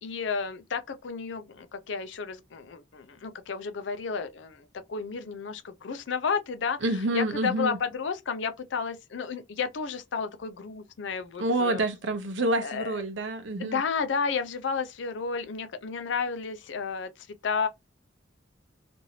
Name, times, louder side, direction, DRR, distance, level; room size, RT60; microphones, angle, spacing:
voice 1, 0.0-11.8 12.6-13.0 13.6-17.1 17.4-17.7, left 5 dB, 70° left, 0.5 m, -32 dB
voice 2, 6.8-7.8 11.4-13.8, right 1 dB, 75° right, 0.7 m, -28 dB
3.0 x 2.6 x 2.8 m
head